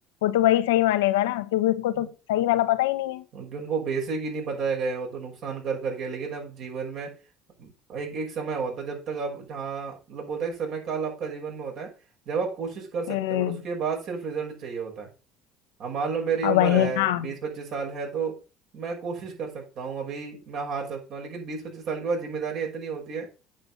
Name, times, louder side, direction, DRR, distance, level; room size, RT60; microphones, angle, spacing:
voice 1, 0.2-3.2 13.1-13.6 16.4-17.3, left 14 dB, 85° left, 1.0 m, -23 dB
voice 2, 3.3-7.1 7.6-11.9 12.3-15.1 15.8-18.4 18.7-23.3, right 5 dB, 60° right, 5.9 m, -31 dB
8.8 x 6.8 x 5.5 m
hypercardioid pair, 75°, 0 cm